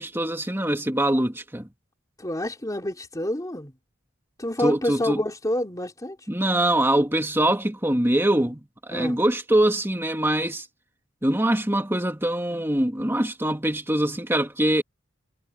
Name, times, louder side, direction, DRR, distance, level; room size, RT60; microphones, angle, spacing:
voice 1, 0.0-1.7 4.6-5.2 6.3-8.6 8.9-10.6 11.2-14.8, right 1 dB, 10° right, 2.3 m, -23 dB
voice 2, 2.2-3.7 4.4-6.2 8.9-9.2, left 1 dB, 15° left, 3.0 m, -28 dB
head